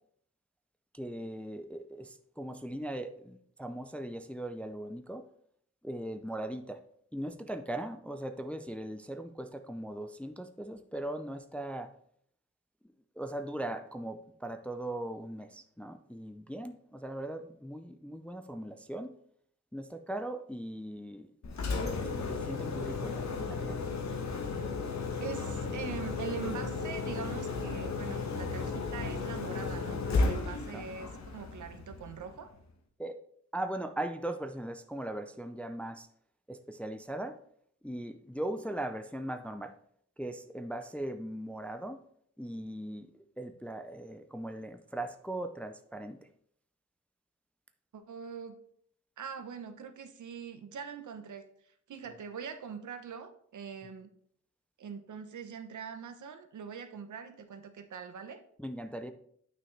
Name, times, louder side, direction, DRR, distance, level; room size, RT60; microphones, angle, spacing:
voice 1, 0.9-5.3 5.8-6.8 7.1-11.9 13.2-19.1 19.7-21.3 22.0-23.8 30.7-30.8 33.0-33.2 33.5-36.1 36.5-37.4 37.8-39.7 40.2-42.0 42.4-43.1 43.4-46.2 52.1-52.2 58.6-59.1, right 1 dB, 5° left, 8 dB, 0.3 m, -39 dB
Engine, 21.4-32.4, left 4 dB, 65° left, 1.1 m, -34 dB
voice 2, 25.2-32.5 47.9-48.6 49.2-51.5 51.9-54.1 54.8-58.4, right 6 dB, 75° right, 8 dB, 0.9 m, -43 dB
9.3 x 6.0 x 3.2 m, 0.66 s
wide cardioid pair, 180°, 30 cm